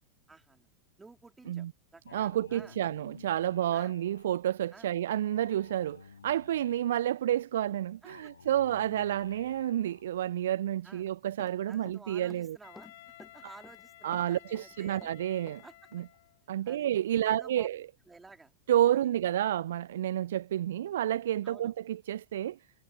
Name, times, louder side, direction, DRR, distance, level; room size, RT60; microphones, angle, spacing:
voice 1, 0.3-0.7 1.0-1.7 1.9-2.8 3.7-3.9 4.7-4.9 8.0-8.3 10.8-11.0 11.7-12.9 13.3-15.1 15.6-15.8 16.6-16.9 17.1-17.7 18.1-18.5 21.4-21.7, right 3 dB, 10° right, 3.3 m, -52 dB
Male speech man speaking, 2.1-4.3 5.3-7.1 8.1-10.1, left 5 dB, 75° left, 4.8 m, -53 dB
voice 2, 2.1-12.6 14.0-15.6 15.9-16.0 16.5-17.8 18.7-22.6, right 12 dB, 65° right, 0.4 m, -30 dB
Run, 11.0-12.0 12.3-13.8 14.1-15.7 15.9-16.1, left 3 dB, 10° left, 1.8 m, -54 dB
Wind instrument woodwind instrument, 12.6-16.5, left 16 dB, 55° left, 2.3 m, -55 dB
figure-of-eight pair, 90°, 0 cm